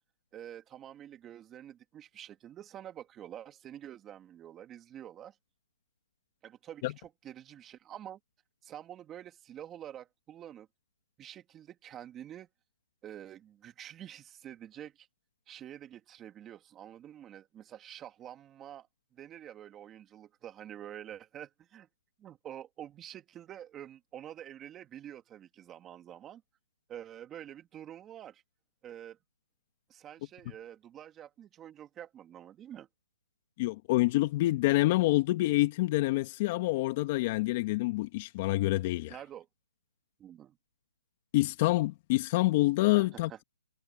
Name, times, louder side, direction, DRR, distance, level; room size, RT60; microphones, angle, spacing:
voice 1, 0.3-5.4 6.4-8.2 8.6-10.7 11.2-12.5 13.0-15.1 15.5-18.9 19.1-21.9 22.2-26.4 26.9-28.4 28.8-29.2 29.9-32.9 39.1-39.5 40.2-40.6 43.0-43.4, right 11 dB, 15° right, 2.6 m, -47 dB
voice 2, 33.6-39.2 41.3-43.4, left 18 dB, 30° left, 2.1 m, -27 dB
hypercardioid pair, 160°, 0 cm